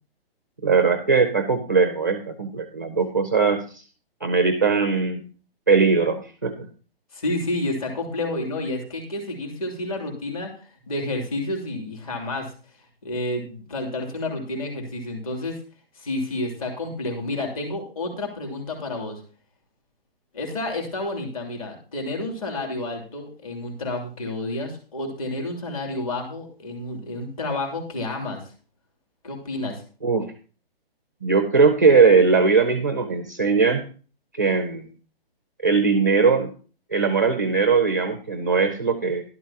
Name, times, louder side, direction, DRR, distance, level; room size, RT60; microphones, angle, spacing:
voice 1, 0.6-3.8 4.2-5.2 5.7-6.7 30.0-30.3 31.2-33.9 34.4-34.9 35.6-36.5 36.9-39.2, right 4 dB, 20° right, 7 dB, 0.5 m, -20 dB
voice 2, 7.1-12.5 13.0-15.6 15.9-19.2 20.3-28.4 29.2-29.8, left 2 dB, 35° left, 2 dB, 2.9 m, -30 dB
12.0 x 11.5 x 2.8 m, 0.37 s
hypercardioid pair, 175°, 30 cm